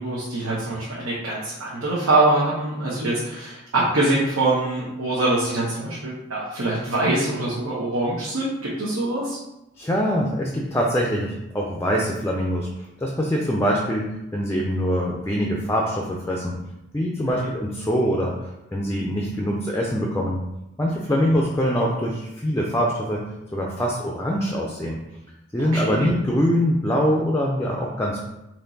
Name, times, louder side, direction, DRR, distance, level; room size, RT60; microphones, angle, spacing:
voice 1, 0.0-9.4 25.6-26.1, right 2 dB, 80° right, -6 dB, 1.0 m, -24 dB
voice 2, 9.8-12.7 13.0-14.1 14.3-16.5 16.9-18.3 18.7-20.4 20.8-23.2 23.5-25.0 25.5-28.2, equal, 10° left, -2 dB, 0.4 m, -23 dB
4.3 x 3.0 x 3.9 m, 0.90 s
head